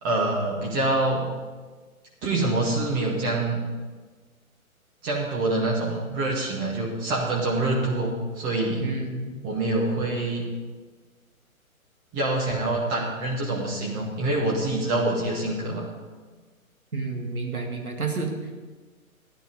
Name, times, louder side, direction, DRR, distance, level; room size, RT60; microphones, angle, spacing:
voice 1, 0.0-1.3 2.2-3.6 5.0-8.9 9.4-10.5 12.1-15.9, right 2 dB, 20° right, -3 dB, 2.0 m, -25 dB
voice 2, 8.8-9.4 16.9-18.3, right 3 dB, 80° right, 2 dB, 2.3 m, -30 dB
13.5 x 10.5 x 5.1 m, 1.4 s
figure-of-eight pair, 125°, 43 cm